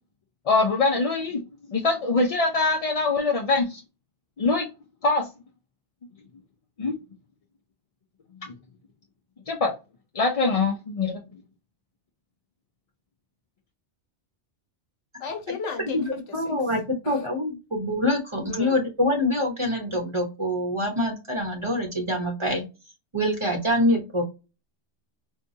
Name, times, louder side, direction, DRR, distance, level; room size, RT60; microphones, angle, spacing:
voice 1, 0.5-1.4 1.7-3.8 4.4-4.7 5.0-5.3 6.8-7.0 8.4-8.5 9.5-9.7 10.1-11.2, left 3 dB, 45° left, 0.5 m, -23 dB
voice 2, 15.2-16.5 17.0-17.2 18.5-18.8, left 5 dB, 80° left, 1.2 m, -35 dB
voice 3, 15.9-16.8 17.1-22.6 23.1-24.2, left 1 dB, 25° right, 1.0 m, -25 dB
4.5 x 2.2 x 2.7 m
omnidirectional pair, 1.2 m